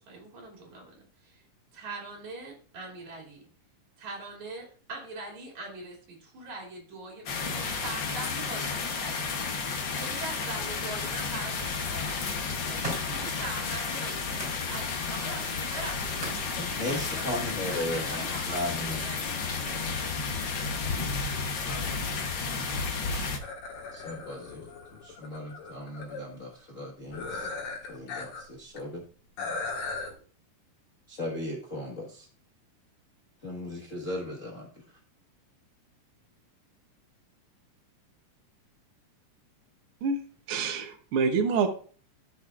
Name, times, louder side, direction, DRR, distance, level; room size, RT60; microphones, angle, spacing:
voice 1, 0.0-1.4 1.7-3.5 4.0-20.3 21.6-22.5, right 3 dB, 65° right, 4.0 m, -43 dB
sound 1, 7.3-23.4, left 4 dB, 65° left, 1.1 m, -32 dB
sound 2, 12.7-14.6 15.0-16.5 17.4-17.5, right 1 dB, 10° right, 4.9 m, -41 dB
voice 2, 16.6-19.0 21.7-21.8 23.9-27.5 27.9-29.0 31.1-32.3 33.4-35.0, left 1 dB, 45° left, 1.0 m, -36 dB
sound 3, 23.4-26.2 27.1-28.5 28.8-28.9 29.4-30.1, left 3 dB, 85° left, 3.4 m, -37 dB
voice 3, 40.5-41.7, right 5 dB, 80° right, 1.2 m, -26 dB
14.5 x 6.3 x 2.4 m
omnidirectional pair, 3.6 m